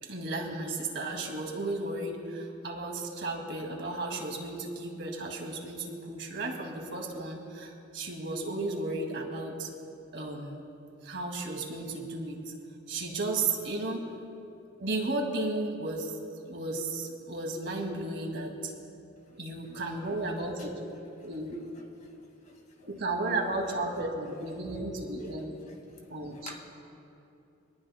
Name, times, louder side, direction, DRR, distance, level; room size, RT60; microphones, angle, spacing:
voice 1, 0.0-9.7 10.1-10.6 11.0-12.5 12.9-14.1 14.8-16.2 16.5-18.7 19.4-20.8 21.2-21.6 22.9-25.6 26.1-26.5, right 2 dB, 60° right, 1 dB, 2.3 m, -34 dB
voice 2, 22.4-22.9 25.7-25.8 26.3-26.6, left 2 dB, 40° left, 1 dB, 2.0 m, -49 dB
25.5 x 19.5 x 2.2 m, 2.8 s
head